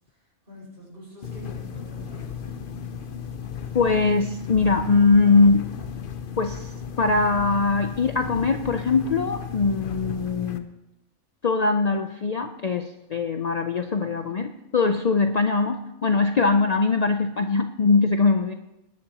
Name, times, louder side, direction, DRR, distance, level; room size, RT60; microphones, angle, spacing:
voice 1, 0.1-2.4, equal, 40° right, -4 dB, 6.0 m, -45 dB
sound 1, 1.2-10.6, left 7 dB, 50° left, 0.8 m, -35 dB
voice 2, 3.7-5.7 6.4-6.7 7.0-10.7 11.4-18.5, left 4 dB, 70° left, 7 dB, 0.3 m, -21 dB
20.0 x 10.5 x 2.9 m, 0.91 s
omnidirectional pair, 1.4 m